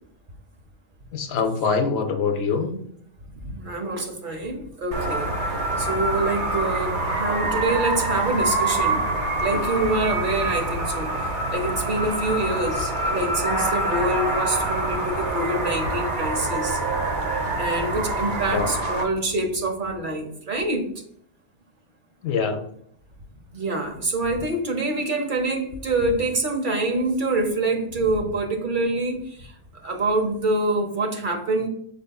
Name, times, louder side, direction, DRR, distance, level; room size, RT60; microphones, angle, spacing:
voice 1, 1.1-2.7 18.5-18.7 22.2-22.6, left 5 dB, 70° left, 6 dB, 0.9 m, -24 dB
voice 2, 3.4-5.3 5.8-9.0 9.4-11.1 11.5-16.8 17.6-20.9 23.5-29.5 29.8-31.7, right 2 dB, 50° right, 3 dB, 1.0 m, -26 dB
sound 1, 4.9-19.0, right 2 dB, 85° right, 1.2 m, -26 dB
5.4 x 4.0 x 2.3 m, 0.67 s
omnidirectional pair, 1.1 m